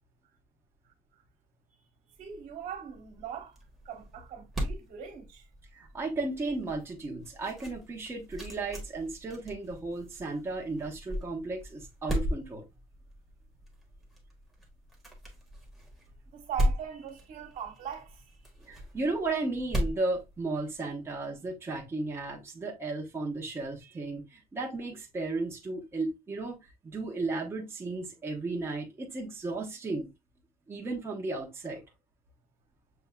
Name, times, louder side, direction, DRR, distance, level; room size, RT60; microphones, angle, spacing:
sound 1, 2.2-21.0, equal, ahead, 1.2 m, -38 dB
voice 1, 2.2-3.6 3.8-5.4 16.3-18.3, right 8 dB, 65° right, 1.3 m, -40 dB
voice 2, 5.7-12.7 18.6-26.6 26.8-30.1 30.7-31.8, right 3 dB, 15° right, 0.9 m, -34 dB
6.7 x 2.7 x 2.3 m
cardioid pair, 175°, 15 cm